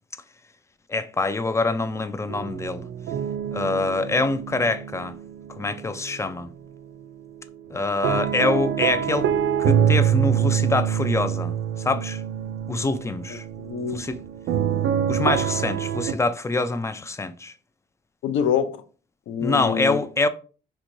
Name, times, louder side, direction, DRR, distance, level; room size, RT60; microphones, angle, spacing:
voice 1, 0.9-2.8 3.5-5.2 5.6-6.5 7.7-9.3 9.6-11.6 11.8-12.2 12.7-13.4 13.9-14.2 15.1-17.5 19.4-20.3, left 3 dB, 15° left, 0.4 m, -25 dB
sound 1, 2.3-6.3 6.7-16.1, right 9 dB, 75° right, 0.4 m, -26 dB
voice 2, 13.3-14.0 18.2-18.8 19.3-20.0, left 8 dB, 75° left, 0.6 m, -26 dB
4.4 x 3.0 x 2.6 m
cardioid pair, 90°, 20 cm